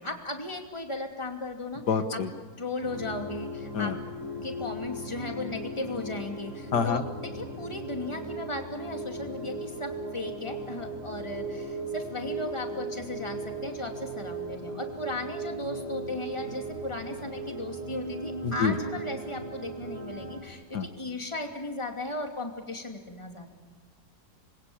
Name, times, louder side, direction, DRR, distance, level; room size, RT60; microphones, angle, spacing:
voice 1, 0.0-2.2 2.6-4.0 4.4-23.5, left 2 dB, 15° left, 3 dB, 2.8 m, -36 dB
voice 2, 1.9-2.3 3.7-3.9 6.7-7.0 18.4-18.7 20.7-20.8, left 6 dB, 80° left, 8 dB, 1.9 m, -26 dB
sound 1, 2.8-20.4, right 2 dB, 40° right, 5.3 m, -37 dB
27.0 x 21.5 x 8.7 m, 1.4 s
omnidirectional pair, 1.7 m